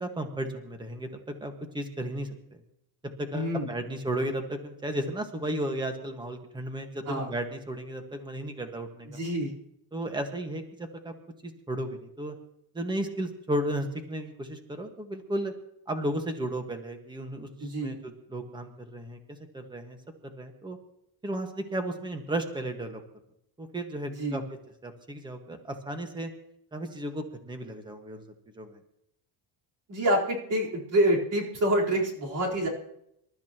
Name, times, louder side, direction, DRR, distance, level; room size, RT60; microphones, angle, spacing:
voice 1, 0.0-1.1 1.4-2.3 3.2-9.2 9.9-11.1 11.4-12.3 12.7-15.5 15.9-20.0 20.2-20.8 21.2-23.0 23.6-24.4 24.8-26.3 26.7-28.2 28.6-28.8, right 1 dB, 10° right, 5 dB, 1.6 m, -34 dB
voice 2, 3.3-3.7 7.1-7.3 9.1-9.5 17.6-18.0 24.2-24.4 29.9-32.7, right 1 dB, 40° right, -3 dB, 4.3 m, -27 dB
27.0 x 13.0 x 3.0 m, 0.77 s
cardioid pair, 165°, 46 cm